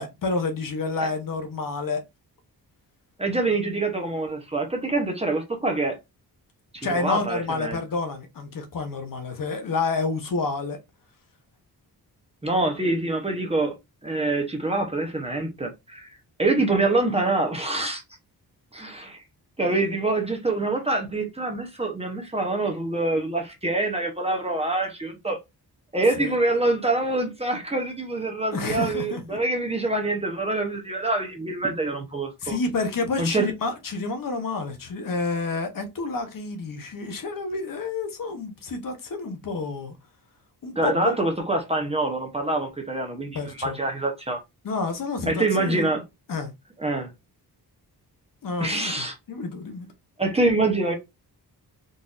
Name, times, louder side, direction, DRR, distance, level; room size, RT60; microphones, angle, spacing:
voice 1, 0.0-2.0 6.8-10.8 26.2-26.4 28.5-29.2 32.4-39.9 40.6-41.1 43.3-43.8 44.6-45.9 46.3-46.5 48.4-49.9, left 3 dB, 55° left, 0.8 m, -29 dB
voice 2, 3.2-6.0 6.7-7.8 12.4-13.7 14.0-16.1 16.4-18.0 18.7-19.2 19.6-25.4 25.9-32.6 33.2-33.5 40.8-44.4 45.3-46.0 46.8-47.1 48.6-49.1 50.2-50.9, right 2 dB, 15° right, 0.7 m, -25 dB
3.9 x 2.6 x 2.4 m
wide cardioid pair, 125°, 40 cm